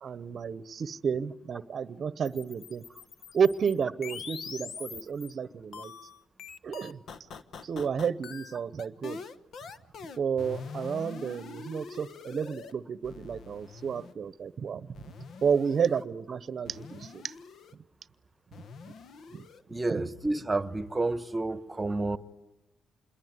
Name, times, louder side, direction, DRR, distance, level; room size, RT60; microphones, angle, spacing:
voice 1, 0.0-2.8 3.3-5.9 6.6-7.0 7.6-9.2 10.2-14.9 15.4-17.3 19.3-19.4 19.7-20.0, right 6 dB, 50° right, 0.9 m, -31 dB
sound 1, 2.3-5.3 5.7-12.7 13.0-14.1 14.9-16.0 16.6-17.7 18.5-19.6, left 5 dB, 65° left, 1.2 m, -44 dB
voice 2, 19.7-22.2, right 2 dB, 20° right, 1.2 m, -30 dB
27.5 x 21.5 x 9.6 m
cardioid pair, 90°, 0 cm